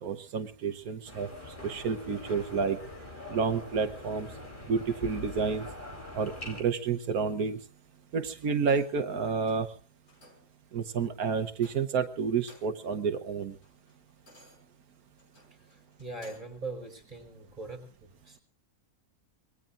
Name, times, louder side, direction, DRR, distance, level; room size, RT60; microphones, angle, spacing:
voice 1, 0.0-2.8 3.3-4.3 4.7-5.7 6.1-7.6 8.1-9.7 10.7-13.5, right 5 dB, 80° right, 7 dB, 1.5 m, -30 dB
sound 1, 1.1-6.6, left 2 dB, 35° left, 4.1 m, -43 dB
sound 2, 8.6-9.1 9.4-9.7 10.1-10.5 10.9-11.1 11.5-12.0 12.3-12.9 13.3-16.6 17.1-17.3, left 1 dB, 85° left, 6.8 m, -58 dB
voice 2, 16.0-17.9 18.2-18.4, right 3 dB, 30° right, 3 dB, 5.7 m, -40 dB
25.5 x 21.5 x 2.6 m, 0.38 s
omnidirectional pair, 1.5 m